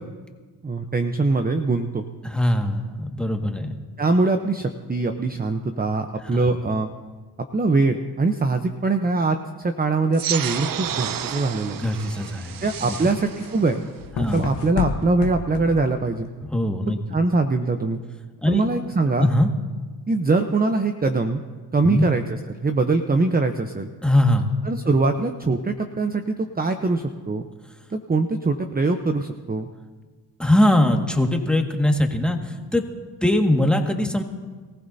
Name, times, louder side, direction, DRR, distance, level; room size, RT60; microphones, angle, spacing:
voice 1, 0.6-2.0 4.0-6.9 7.5-11.8 12.6-13.8 14.2-16.3 16.9-18.0 18.5-19.3 20.1-21.4 21.7-23.9 24.6-27.5 27.9-29.7, right 3 dB, 20° right, 6 dB, 0.9 m, -23 dB
voice 2, 2.2-3.7 6.2-6.4 11.8-13.0 14.2-14.5 16.5-17.0 18.4-18.6 19.2-19.5 21.8-22.1 24.0-24.5 30.4-32.9 33.2-34.2, left 1 dB, ahead, 3 dB, 1.9 m, -21 dB
sound 1, 10.1-15.1, right 10 dB, 50° right, 0.7 m, -32 dB
sound 2, 10.6-16.4, left 7 dB, 80° left, 1.2 m, -33 dB
23.5 x 15.0 x 2.8 m, 1.4 s
supercardioid pair, 60°, 43 cm